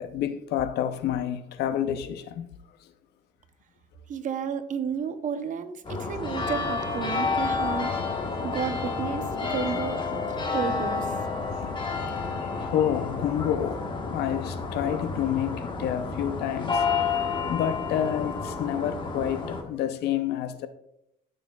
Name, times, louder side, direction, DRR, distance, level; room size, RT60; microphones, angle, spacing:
voice 1, 0.0-2.5 6.0-6.5 8.3-8.6 9.6-9.7 10.4-10.6 11.4-16.8 17.5-20.7, left 10 dB, 75° left, 0.7 m, -29 dB
voice 2, 4.1-8.0 8.4-11.2, right 7 dB, 50° right, 0.7 m, -32 dB
sound 1, 5.8-19.6, left 4 dB, 30° left, 1.3 m, -30 dB
13.0 x 6.5 x 2.3 m
cardioid pair, 110°, 17 cm